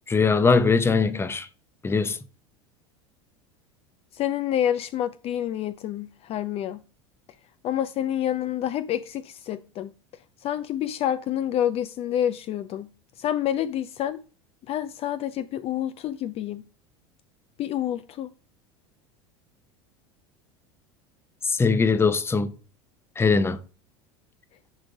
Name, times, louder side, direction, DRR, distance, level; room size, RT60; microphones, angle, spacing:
voice 1, 0.1-1.5 1.8-2.2 21.5-22.5 23.2-23.6, left 4 dB, 15° left, 0.8 m, -21 dB
voice 2, 4.1-6.8 7.6-9.9 10.4-12.9 13.2-14.2 14.7-16.6 17.6-18.3, left 11 dB, 40° left, 0.5 m, -28 dB
10.5 x 3.8 x 4.9 m
hypercardioid pair, 90°, 15 cm